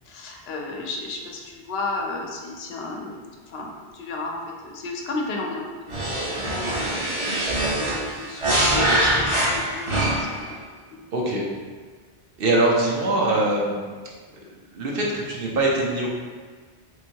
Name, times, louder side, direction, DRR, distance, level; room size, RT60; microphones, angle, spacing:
voice 1, 0.1-3.2 3.5-4.4 4.6-10.6 10.9-11.0, left 2 dB, 75° left, 0 dB, 0.8 m, -33 dB
sound 1, 5.9-10.5, right 1 dB, 35° right, 0.6 m, -23 dB
voice 2, 11.1-11.4 12.4-13.9 14.7-16.1, right 2 dB, 65° right, -3 dB, 0.9 m, -22 dB
3.5 x 3.1 x 2.8 m, 1.5 s
omnidirectional pair, 1.1 m